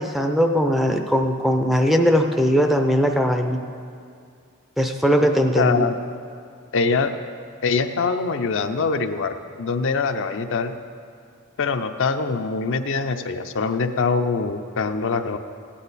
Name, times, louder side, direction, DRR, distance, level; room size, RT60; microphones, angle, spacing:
voice 1, 0.0-3.6 4.8-5.9, equal, ahead, 4 dB, 0.5 m, -20 dB
voice 2, 5.6-6.0 6.7-7.1 7.6-10.7 11.6-15.4, left 4 dB, 60° left, 7 dB, 0.6 m, -23 dB
15.5 x 10.0 x 4.1 m, 2.3 s
head